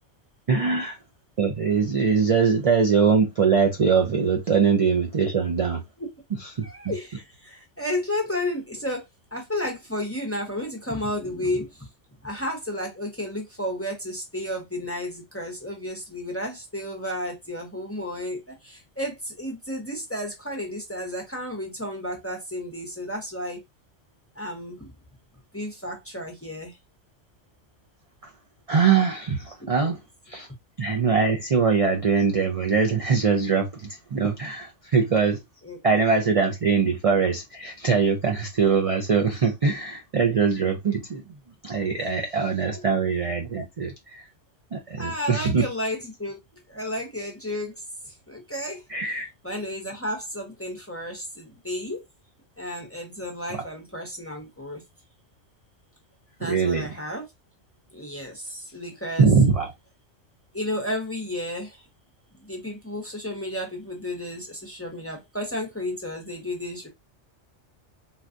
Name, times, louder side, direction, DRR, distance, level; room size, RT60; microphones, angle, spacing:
voice 1, 0.5-1.0 1.4-5.8 6.4-6.9 28.2-28.3 28.7-30.0 30.3-30.5 30.8-35.4 35.8-41.2 41.6-44.3 44.7-45.7 48.9-49.3 53.5-53.6 56.4-57.0 59.2-59.7, right 5 dB, 45° right, 0.4 m, -22 dB
voice 2, 6.6-11.9 12.2-23.6 24.3-24.9 25.5-26.8 29.8-29.9 35.6-35.8 42.7-42.8 45.0-46.4 46.7-48.8 49.4-52.0 52.6-54.8 56.4-57.3 57.9-59.3 60.5-61.8 62.3-66.9, left 1 dB, 15° left, 0.7 m, -32 dB
4.1 x 2.3 x 2.5 m
omnidirectional pair, 1.3 m